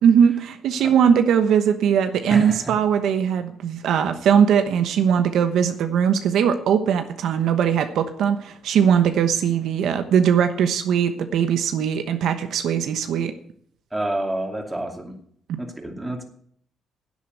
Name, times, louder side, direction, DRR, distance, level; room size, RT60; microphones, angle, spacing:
voice 1, 0.0-13.3 15.5-15.6, right 8 dB, 75° right, 8 dB, 1.0 m, -20 dB
voice 2, 2.3-2.7 13.9-15.2 15.6-16.2, right 1 dB, 10° right, 3 dB, 2.5 m, -29 dB
10.5 x 8.4 x 7.8 m, 0.64 s
cardioid pair, 90°, 0 cm